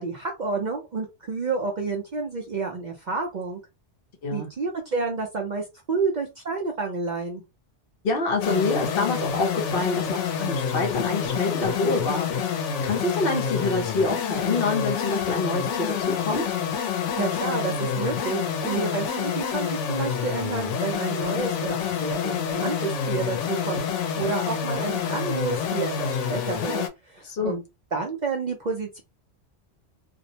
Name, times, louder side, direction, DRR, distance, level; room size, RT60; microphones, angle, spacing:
voice 1, 0.0-3.6 4.3-7.4 17.2-27.6 27.9-29.0, right 4 dB, 55° right, 0.5 m, -30 dB
voice 2, 8.0-12.5 12.8-16.6 27.3-27.6, left 3 dB, 55° left, 0.8 m, -26 dB
sound 1, 8.4-26.9, left 7 dB, 85° left, 0.9 m, -28 dB
sound 2, 14.3-19.1, left 7 dB, 35° left, 0.5 m, -40 dB
2.5 x 2.0 x 2.7 m
omnidirectional pair, 1.2 m